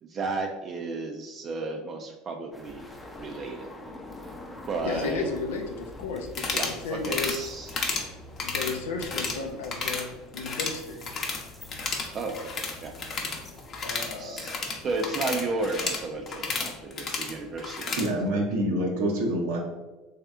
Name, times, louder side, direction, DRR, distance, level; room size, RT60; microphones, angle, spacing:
voice 1, 0.0-2.9 3.2-3.7 4.7-5.3 6.5-7.7 12.1-12.9 14.2-14.6 14.8-18.0, right 3 dB, 40° right, 3 dB, 0.4 m, -33 dB
sound 1, 2.5-15.1, left 2 dB, 15° left, 0.6 m, -46 dB
voice 2, 4.8-7.4 8.4-11.0 13.8-14.5, left 4 dB, 90° left, 3 dB, 0.4 m, -34 dB
sound 2, 6.3-6.8 7.0-7.4 7.7-8.1 8.4-9.4 9.6-10.0 10.3-11.4 11.7-18.1, left 4 dB, 45° left, 0.8 m, -32 dB
voice 3, 18.0-19.6, right 1 dB, 80° right, 0 dB, 0.8 m, -26 dB
3.2 x 2.8 x 3.5 m, 1.1 s
supercardioid pair, 95°, 0 cm